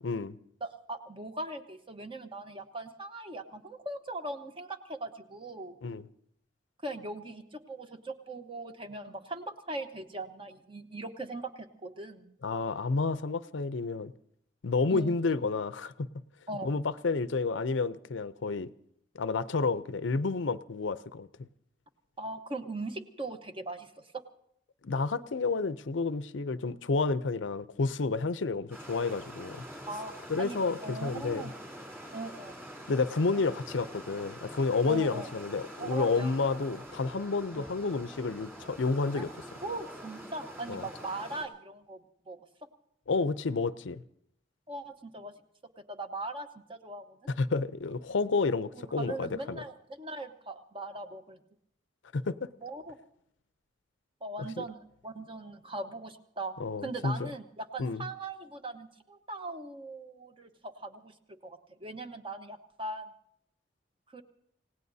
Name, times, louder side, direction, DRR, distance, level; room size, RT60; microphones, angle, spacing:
voice 1, 0.0-0.4 5.8-6.1 12.4-14.1 14.6-16.1 16.6-18.7 19.1-21.5 24.8-29.6 30.3-31.4 32.9-39.3 40.7-40.8 43.1-44.0 47.4-49.6 52.1-52.5 54.6-54.7 56.6-57.3 57.8-58.0, left 4 dB, 85° left, 0.6 m, -30 dB
voice 2, 0.6-5.8 6.8-12.4 14.9-15.2 16.5-16.7 22.2-24.2 29.9-31.5 32.1-32.7 33.3-33.4 34.9-35.3 35.8-36.6 37.6-37.7 39.1-39.2 39.6-42.0 42.3-42.4 44.7-45.3 45.9-47.0 48.8-51.4 52.6-53.0 54.2-61.1 61.4-63.1 64.1-64.2, right 2 dB, 30° right, 1.1 m, -40 dB
sound 1, 28.7-41.5, equal, 10° right, 3.5 m, -46 dB
28.5 x 17.5 x 2.7 m
head